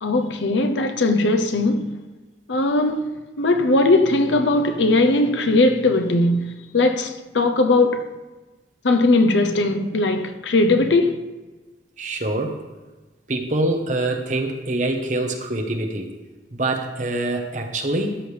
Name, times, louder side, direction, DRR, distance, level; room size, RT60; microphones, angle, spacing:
voice 1, 0.0-1.9 2.5-8.1 8.8-11.2, left 2 dB, 85° left, 0.8 m, -19 dB
voice 2, 12.0-12.6 13.3-16.1 16.5-18.2, right 2 dB, 40° right, 1.1 m, -25 dB
13.0 x 8.7 x 3.3 m
head